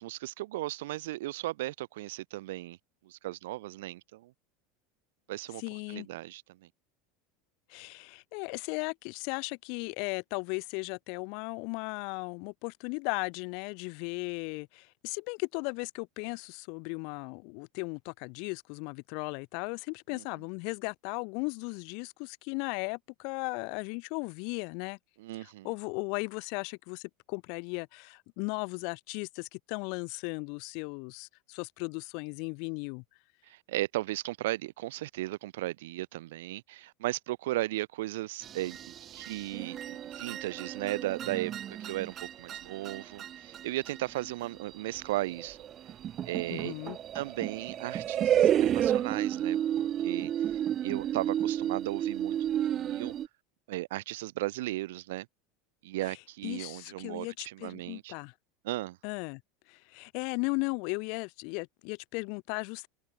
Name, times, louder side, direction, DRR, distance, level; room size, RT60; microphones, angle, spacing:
voice 1, 0.0-2.8 3.0-4.3 5.3-5.6 5.9-6.7 20.1-20.2 25.2-25.7 33.5-45.6 46.2-46.7 47.1-49.6 50.0-50.5 50.8-53.1 53.7-55.3 55.8-58.1 58.6-59.0, right 17 dB, 80° right, 1.5 m, -36 dB
voice 2, 5.6-6.1 7.7-25.0 25.4-33.0 46.5-47.0 56.4-58.3 59.0-59.4 59.7-62.9, left 37 dB, 50° left, 0.4 m, -36 dB
sound 1, 38.4-53.3, right 10 dB, 25° right, 0.4 m, -31 dB
supercardioid pair, 175°, 0 cm